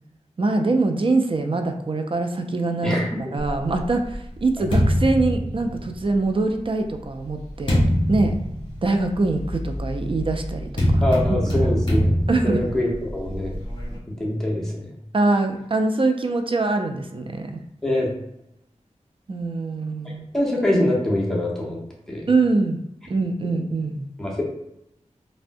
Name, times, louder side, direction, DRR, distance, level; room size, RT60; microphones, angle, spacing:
voice 1, 0.4-3.0 3.3-7.8 8.1-8.3 8.8-11.0 12.3-12.6 15.1-17.6 19.3-20.3 22.3-22.8 23.1-24.1, right 3 dB, 45° right, 5 dB, 0.4 m, -23 dB
voice 2, 2.8-3.3 11.0-12.1 12.4-13.6 14.1-14.9 17.8-18.1 20.3-21.8 22.1-22.3 24.2-24.4, left 1 dB, 5° left, -4 dB, 0.9 m, -24 dB
sound 1, 3.4-6.2 6.9-14.0, equal, 40° left, 1.2 m, -24 dB
3.4 x 2.1 x 2.6 m, 0.80 s
wide cardioid pair, 55°, 12 cm